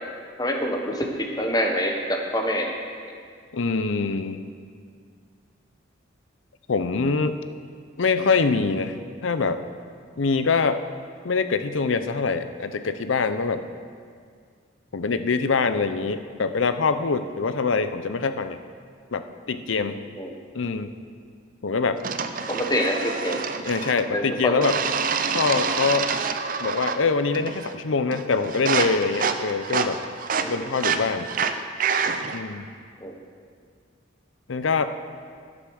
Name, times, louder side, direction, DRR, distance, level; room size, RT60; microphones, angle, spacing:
voice 1, 0.4-2.7 3.0-3.1 20.2-20.3 22.5-23.4 24.1-24.7 30.4-30.7 33.0-33.2, equal, 20° left, 2 dB, 1.1 m, -26 dB
voice 2, 3.5-4.4 6.7-7.4 8.0-9.0 9.2-9.6 10.2-10.8 11.2-13.7 14.9-18.6 19.1-20.0 20.5-20.9 21.6-22.0 23.7-24.8 25.3-26.1 26.6-30.0 30.5-31.3 32.3-32.7 34.5-34.9, left 4 dB, 85° left, 10 dB, 0.6 m, -24 dB
sound 1, 22.0-24.1 24.6-27.1 27.3-27.8 28.1-32.4, right 5 dB, 45° right, 0.6 m, -27 dB
12.5 x 7.9 x 6.3 m, 2.1 s
head